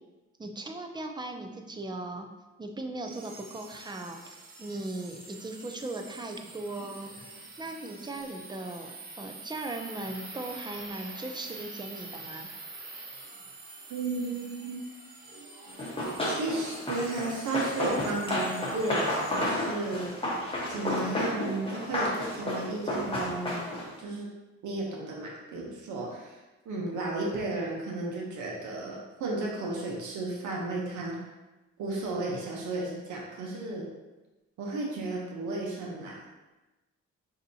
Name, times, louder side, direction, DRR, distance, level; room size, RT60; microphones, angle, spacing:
voice 1, 0.4-2.3 2.6-12.5, right 2 dB, 15° right, 4 dB, 0.4 m, -38 dB
sound 1, 3.0-20.7, right 3 dB, 30° right, 0.9 m, -46 dB
voice 2, 13.9-14.8 16.2-20.2 20.7-24.3 24.6-31.3 31.8-33.9 34.6-36.2, right 2 dB, 75° right, -2 dB, 0.9 m, -34 dB
Run, 15.8-24.0, left 1 dB, 20° left, 1.1 m, -31 dB
5.2 x 2.8 x 2.7 m, 1.1 s
cardioid pair, 90°, 30 cm